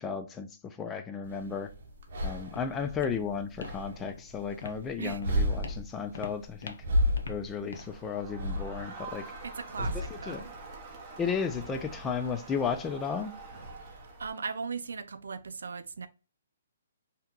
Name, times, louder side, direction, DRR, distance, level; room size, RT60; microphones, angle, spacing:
voice 1, 0.0-1.7 2.2-6.8 7.3-9.2 10.1-10.4 11.2-13.3, left 6 dB, 15° left, 0.3 m, -34 dB
sound 1, 1.2-14.3, equal, 60° right, 0.8 m, -35 dB
Walk footsteps, 1.9-9.8, left 4 dB, 75° left, 0.5 m, -48 dB
voice 2, 2.7-3.3 5.0-5.2 9.4-10.5 13.8-16.1, right 5 dB, 85° right, 0.4 m, -39 dB
Crowd, 7.7-14.6, right 4 dB, 25° right, 0.8 m, -47 dB
2.8 x 2.2 x 3.6 m
hypercardioid pair, 155°, 0 cm